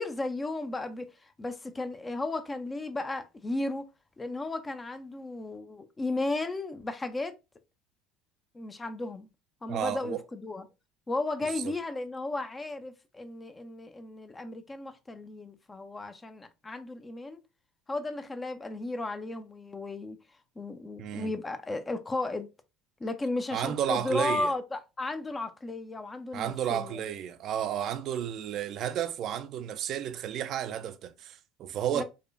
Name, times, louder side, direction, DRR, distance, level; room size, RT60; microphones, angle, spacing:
voice 1, 0.0-3.8 4.2-7.3 8.5-9.3 9.6-10.7 11.1-17.4 17.9-20.2 20.6-22.5 23.0-27.0 31.9-32.0, left 2 dB, 20° left, 0.5 m, -34 dB
voice 2, 9.7-10.2 11.6-11.7 21.0-21.3 23.5-24.5 26.3-32.0, right 10 dB, 50° right, 0.4 m, -32 dB
4.8 x 2.2 x 2.5 m
figure-of-eight pair, 65°, 0 cm